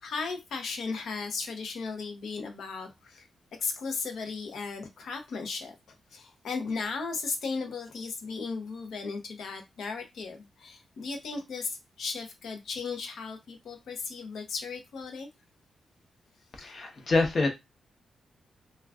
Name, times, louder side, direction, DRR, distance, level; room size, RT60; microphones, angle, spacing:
voice 1, 0.0-3.3 3.6-5.7 6.1-15.3 16.6-16.7 17.1-17.2, left 4 dB, 75° left, 0.7 m, -36 dB
voice 2, 16.6-17.5, left 3 dB, 40° left, 0.8 m, -26 dB
2.4 x 2.2 x 3.4 m
wide cardioid pair, 145°, 0 cm